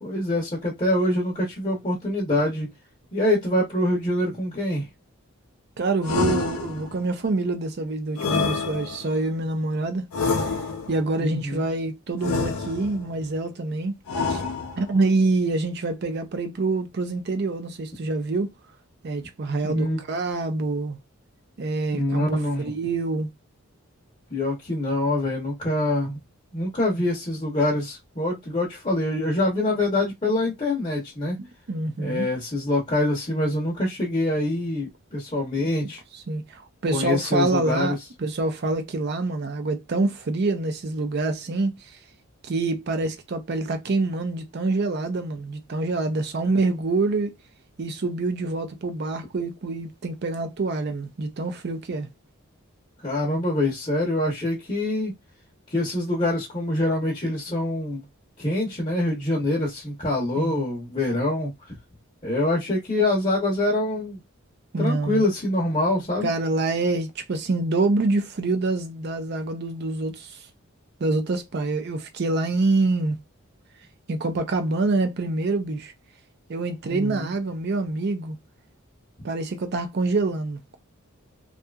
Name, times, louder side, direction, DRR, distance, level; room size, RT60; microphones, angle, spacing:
voice 1, 0.0-2.7 3.1-4.9 11.2-11.7 19.6-20.0 21.9-22.7 24.3-26.2 26.5-31.4 32.0-36.0 36.9-38.0 53.0-55.1 55.7-58.0 58.4-61.5 62.2-64.2 64.8-66.3 76.9-77.3, left 1 dB, 25° left, 0.8 m, -25 dB
voice 2, 5.8-10.0 10.9-13.9 14.3-14.4 14.8-18.5 19.0-21.0 21.6-23.3 31.7-32.3 36.3-41.7 42.4-47.3 47.8-52.1 60.4-60.5 64.7-65.2 66.2-70.4 71.0-73.2 74.1-75.9 76.5-78.4 79.2-80.8, right 3 dB, 45° right, 0.4 m, -26 dB
sound 1, 6.0-7.1 8.2-9.2 10.1-11.1 12.2-13.1 14.1-15.0, left 4 dB, 80° left, 0.5 m, -27 dB
2.7 x 2.4 x 2.3 m
head